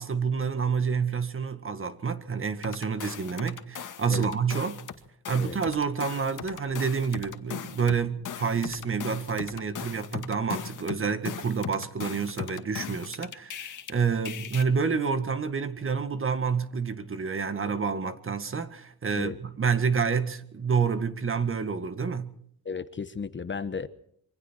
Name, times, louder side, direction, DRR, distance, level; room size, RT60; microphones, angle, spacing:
voice 1, 0.0-4.8 5.3-22.3, right 5 dB, 35° right, 1.8 m, -28 dB
sound 1, 2.6-5.0 5.2-13.9 14.2-14.6, left 8 dB, 55° left, 2.1 m, -38 dB
voice 2, 22.6-23.9, left 5 dB, 30° left, 1.2 m, -34 dB
27.0 x 24.5 x 4.5 m
cardioid pair, 125°, 37 cm